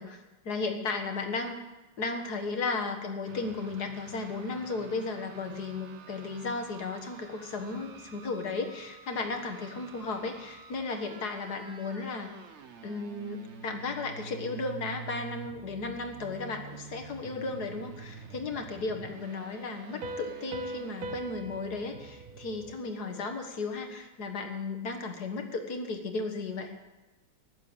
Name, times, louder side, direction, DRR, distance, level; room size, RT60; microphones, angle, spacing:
voice 1, 0.0-1.6 2.0-12.3 12.8-26.7, left 3 dB, 50° left, 5 dB, 1.8 m, -35 dB
sound 1, 3.3-22.7, right 6 dB, 50° right, 0.8 m, -48 dB
Piano, 20.0-23.4, right 2 dB, 70° right, 1.8 m, -41 dB
15.0 x 11.0 x 7.1 m, 1.1 s
omnidirectional pair, 2.4 m